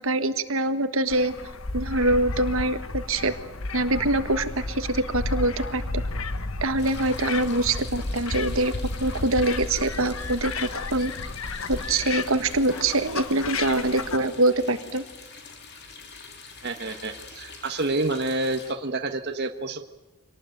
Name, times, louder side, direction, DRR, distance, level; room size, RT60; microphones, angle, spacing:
voice 1, 0.0-1.3 1.7-3.3 3.7-6.0 6.6-8.7 9.0-11.1 11.7-15.0, right 2 dB, 65° right, 9 dB, 1.5 m, -24 dB
sound 1, 1.1-14.2, left 3 dB, 65° left, 1.4 m, -32 dB
sound 2, 6.8-18.7, left 4 dB, 50° left, 3.1 m, -45 dB
voice 2, 16.6-19.9, right 2 dB, 50° right, 5 dB, 1.4 m, -28 dB
25.5 x 19.0 x 9.3 m, 1.1 s
head